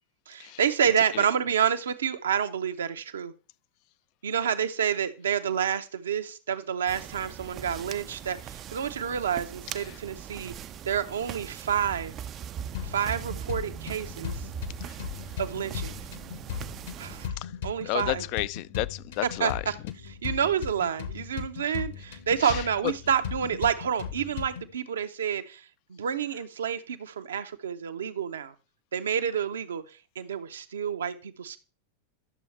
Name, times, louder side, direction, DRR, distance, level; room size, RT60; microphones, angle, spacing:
voice 1, 0.3-3.3 4.2-10.5 10.9-12.1 12.8-14.4 15.4-15.9 17.0-17.3 17.6-18.2 19.4-19.7 20.1-25.6 25.9-28.5 28.9-29.8 30.2-31.6, right 8 dB, 65° right, 0.7 m, -29 dB
sound 1, 6.9-17.3, right 9 dB, 30° right, 0.4 m, -40 dB
sound 2, 12.7-24.7, left 7 dB, 60° left, 1.2 m, -38 dB
voice 2, 17.8-19.6 21.7-21.8 22.4-22.9, left 18 dB, 45° left, 0.4 m, -32 dB
11.0 x 6.9 x 3.3 m
figure-of-eight pair, 90°, 0 cm